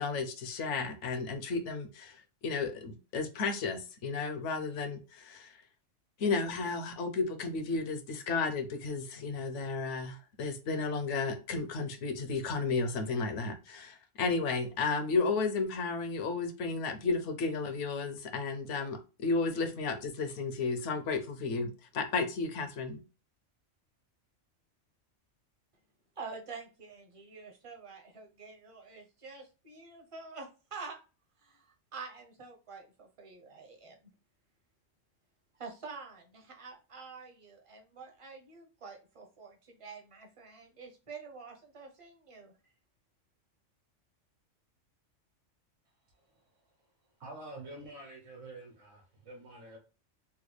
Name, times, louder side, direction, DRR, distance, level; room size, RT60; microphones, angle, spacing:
voice 1, 0.0-5.6 6.2-23.0, left 4 dB, 75° left, 7 dB, 0.9 m, -33 dB
voice 2, 26.2-31.0 31.4-31.6 31.9-34.0 35.6-42.5, right 4 dB, 35° right, 2 dB, 0.6 m, -47 dB
voice 3, 47.2-49.8, right 2 dB, 65° right, 1 dB, 1.2 m, -47 dB
3.3 x 2.2 x 3.1 m, 0.33 s
omnidirectional pair, 1.3 m